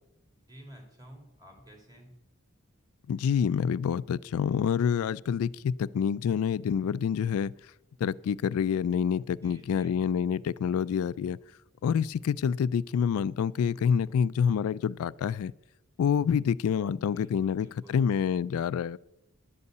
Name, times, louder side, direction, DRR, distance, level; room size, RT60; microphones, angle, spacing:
voice 1, 0.5-2.1 9.4-10.0 17.0-18.1, right 1 dB, 20° right, 2.4 m, -52 dB
voice 2, 3.1-7.5 8.0-11.4 11.8-15.5 16.0-19.0, left 7 dB, 90° left, 0.3 m, -27 dB
11.5 x 5.4 x 8.0 m
head